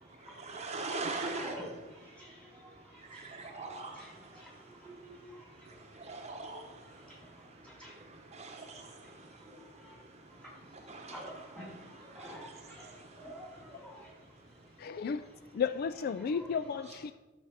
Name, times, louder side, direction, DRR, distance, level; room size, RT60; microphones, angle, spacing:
voice 1, 0.2-1.6 3.1-4.2 5.7-6.8 7.8-9.4 10.7-13.2, right 3 dB, 35° right, 0.9 m, -42 dB
voice 2, 1.2-1.7 2.2-2.7 3.1-4.5 4.8-5.4 7.1-7.2 7.6-7.9 9.9-10.0 11.1-11.7 12.1-12.9 13.2-14.0 16.2-16.9, equal, 5° left, 3.6 m, -48 dB
voice 3, 14.8-15.2 15.6-17.1, left 6 dB, 50° left, 0.3 m, -33 dB
12.0 x 6.7 x 4.9 m
head